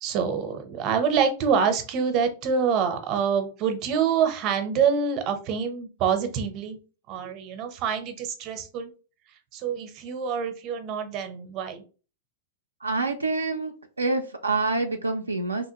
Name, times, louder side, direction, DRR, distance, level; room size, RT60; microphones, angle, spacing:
voice 1, 0.0-6.8 7.1-8.9 9.5-11.8, right 6 dB, 40° right, 8 dB, 0.6 m, -26 dB
voice 2, 12.8-15.7, right 3 dB, 90° right, 4 dB, 0.3 m, -27 dB
2.8 x 2.5 x 2.8 m, 0.35 s
figure-of-eight pair, 100°, 0 cm